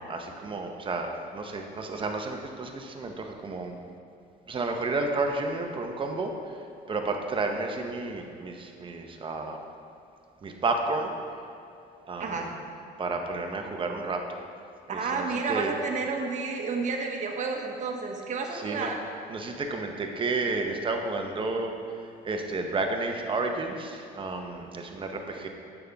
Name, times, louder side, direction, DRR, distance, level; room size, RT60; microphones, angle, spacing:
voice 1, 0.1-3.7 4.5-6.3 6.9-9.6 10.4-11.1 12.1-12.3 13.0-14.2 15.2-15.7 18.6-18.9 19.3-21.7 22.2-25.5, right 3 dB, 30° right, 3 dB, 0.9 m, -31 dB
voice 2, 12.2-12.5 14.9-19.0, right 4 dB, 45° right, 2 dB, 1.1 m, -31 dB
9.1 x 7.1 x 3.5 m, 2.6 s
cardioid pair, 110°, 17 cm